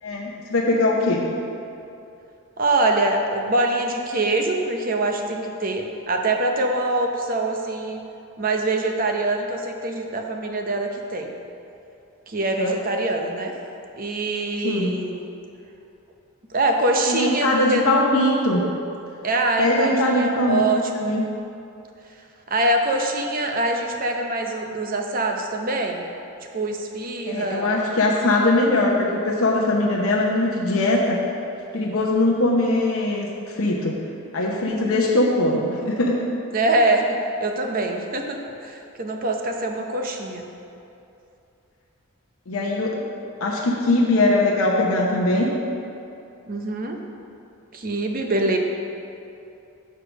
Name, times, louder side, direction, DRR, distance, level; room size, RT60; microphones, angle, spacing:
voice 1, 0.0-1.3 12.6-12.7 14.6-14.9 17.1-18.7 19.6-20.6 20.9-21.2 27.3-31.2 31.7-34.0 34.3-36.3 42.5-43.0 43.4-45.5, left 2 dB, 85° left, -2 dB, 0.8 m, -21 dB
voice 2, 2.6-8.0 8.4-11.3 12.3-13.5 14.0-15.2 16.5-17.8 19.2-21.1 22.5-26.1 26.5-27.7 36.5-37.1 37.4-40.5 46.5-47.0 47.7-48.6, right 2 dB, 40° right, 3 dB, 0.7 m, -24 dB
6.5 x 4.7 x 6.4 m, 2.7 s
head